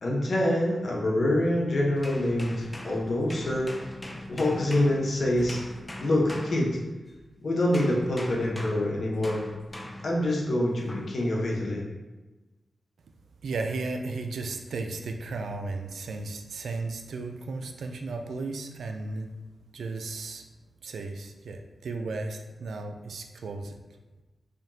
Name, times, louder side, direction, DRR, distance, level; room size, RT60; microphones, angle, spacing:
voice 1, 0.0-3.8 4.3-5.6 6.0-6.8 7.4-9.4 10.0-11.8, left 1 dB, 65° left, -2 dB, 1.0 m, -26 dB
sound 1, 2.0-7.2 7.7-10.2 10.9-11.2, left 1 dB, 20° left, 0.6 m, -41 dB
voice 2, 13.4-19.3 19.7-20.5 20.8-23.8, right 3 dB, 85° right, 4 dB, 0.4 m, -34 dB
5.0 x 2.8 x 2.7 m, 1.2 s
cardioid pair, 55°, 0 cm